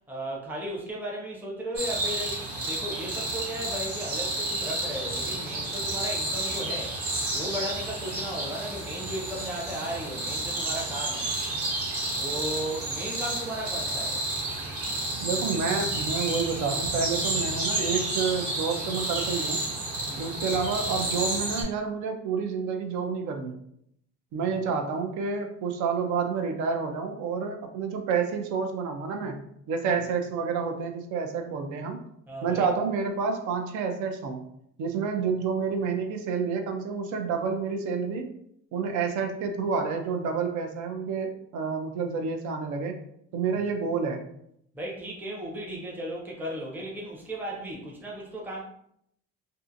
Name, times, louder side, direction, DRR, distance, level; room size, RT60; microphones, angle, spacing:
voice 1, 0.1-7.0 7.3-11.3 12.2-14.2 20.0-20.3 32.3-32.7 44.7-48.6, right 1 dB, 5° right, -3 dB, 0.5 m, -35 dB
sound 1, 1.7-21.6, right 2 dB, 50° right, 1.0 m, -31 dB
voice 2, 15.2-19.6 20.2-23.5 24.3-29.4 29.7-32.0 32.4-34.5 34.8-38.3 38.7-43.0 43.3-44.2, right 5 dB, 75° right, 5 dB, 0.5 m, -29 dB
2.6 x 2.4 x 2.5 m, 0.71 s
cardioid pair, 155°, 30 cm